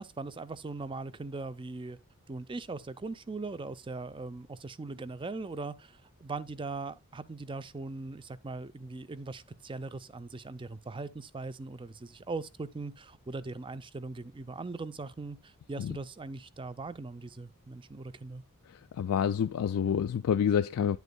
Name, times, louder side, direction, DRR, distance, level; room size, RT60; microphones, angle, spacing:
voice 1, 0.0-2.0 2.3-18.4, right 3 dB, 20° right, 0.4 m, -40 dB
voice 2, 19.0-21.0, left 8 dB, 75° left, 0.3 m, -28 dB
10.0 x 8.1 x 2.2 m
head